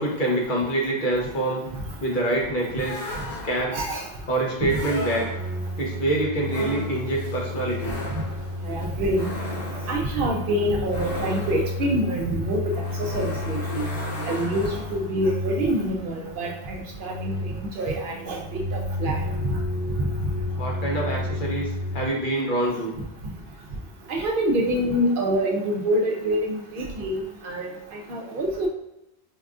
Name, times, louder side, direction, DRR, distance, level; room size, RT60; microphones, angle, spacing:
voice 1, 0.0-1.6 2.0-3.0 3.4-3.8 4.3-5.3 5.8-8.0 20.6-22.9, right 1 dB, 55° left, -2 dB, 0.9 m, -25 dB
sound 1, 2.8-3.9 4.7-5.7 6.5-15.2, left 1 dB, 80° left, 1.0 m, -36 dB
sound 2, 3.7-22.0, left 1 dB, 25° right, 0.8 m, -32 dB
voice 2, 3.7-4.0 8.7-9.3 9.9-12.6 13.1-13.8 14.3-17.3 17.8-19.2 20.0-20.1 24.1-27.2 27.4-27.7 28.1-28.7, right 1 dB, 60° right, 1 dB, 0.7 m, -26 dB
4.6 x 2.3 x 2.4 m, 0.89 s
omnidirectional pair, 1.1 m